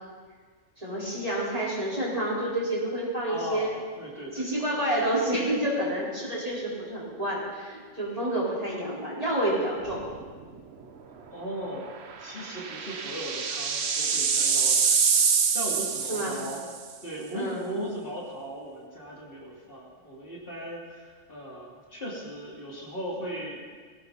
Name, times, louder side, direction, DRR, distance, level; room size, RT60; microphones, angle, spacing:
voice 1, 0.8-3.7 4.3-10.0 16.1-16.4 17.3-17.7, right 1 dB, 30° right, -6 dB, 4.6 m, -29 dB
voice 2, 3.3-4.5 11.3-11.9 12.2-16.7 17.0-23.6, right 1 dB, 45° left, -4 dB, 3.1 m, -38 dB
sound 1, 9.9-10.2 10.6-10.7 12.1-16.8, right 6 dB, 60° right, 1.2 m, -25 dB
21.5 x 16.5 x 4.1 m, 1.5 s
omnidirectional pair, 1.3 m